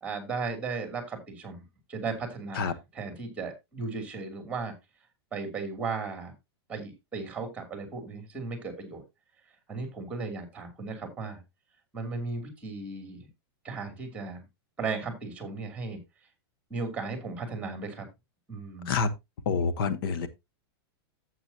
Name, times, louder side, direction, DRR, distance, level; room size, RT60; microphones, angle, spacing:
voice 1, 0.0-1.6 1.9-4.7 5.3-6.3 6.7-9.0 9.7-11.4 11.9-13.3 13.6-14.4 14.8-16.0 16.7-18.1 18.5-18.9, right 4 dB, 10° right, 2.8 m, -36 dB
voice 2, 19.4-20.3, left 5 dB, 60° left, 1.1 m, -27 dB
11.5 x 8.1 x 2.8 m
supercardioid pair, 160°, 14 cm